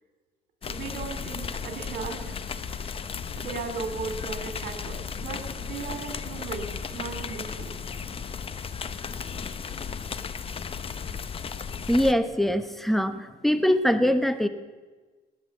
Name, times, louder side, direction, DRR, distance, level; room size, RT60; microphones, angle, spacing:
sound 1, 0.6-12.1, left 6 dB, 35° left, 0.8 m, -35 dB
voice 1, 0.6-2.9 3.3-7.8, right 5 dB, 65° right, 6 dB, 2.9 m, -37 dB
voice 2, 11.9-14.5, equal, ahead, 11 dB, 1.0 m, -23 dB
19.5 x 9.9 x 7.2 m, 1.3 s
cardioid pair, 110°, 17 cm